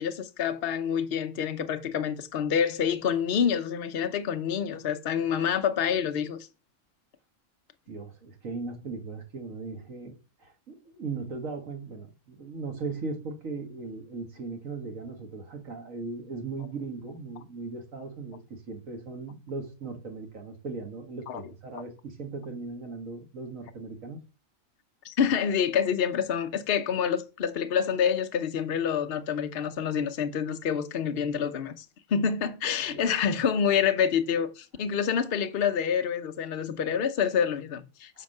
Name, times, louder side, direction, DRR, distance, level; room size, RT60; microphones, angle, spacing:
voice 1, 0.0-6.4 21.3-21.4 21.7-21.8 25.0-38.2, left 7 dB, 55° left, 0.9 m, -27 dB
voice 2, 7.9-24.2 32.9-33.1 38.1-38.2, right 4 dB, 85° right, 2.0 m, -38 dB
6.4 x 4.7 x 6.5 m
omnidirectional pair, 1.3 m